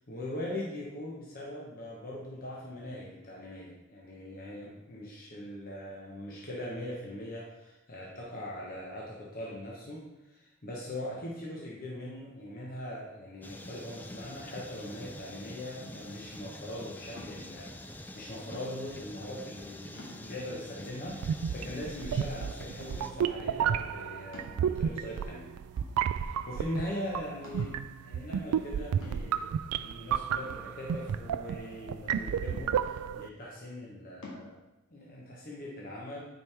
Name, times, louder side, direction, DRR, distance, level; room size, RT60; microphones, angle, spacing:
voice 1, 0.1-25.5 26.1-34.6 34.9-36.2, left 1 dB, 40° left, -4 dB, 1.1 m, -41 dB
sound 1, 13.4-23.1, left 1 dB, 10° left, 0.3 m, -46 dB
sound 2, 15.8-16.2 17.2-17.6 18.5-19.0 19.5-19.6 20.0-20.6 21.1-21.2 21.6-22.4 22.9-23.3 24.3-25.1 25.8-26.4 26.7-26.8 27.4-27.9 29.0-29.5 30.4-31.3 32.5-33.1 34.2-34.5, left 2 dB, 65° left, 2.0 m, -49 dB
sound 3, 21.2-33.3, right 8 dB, 90° right, 0.3 m, -32 dB
9.2 x 4.6 x 3.4 m, 0.98 s
head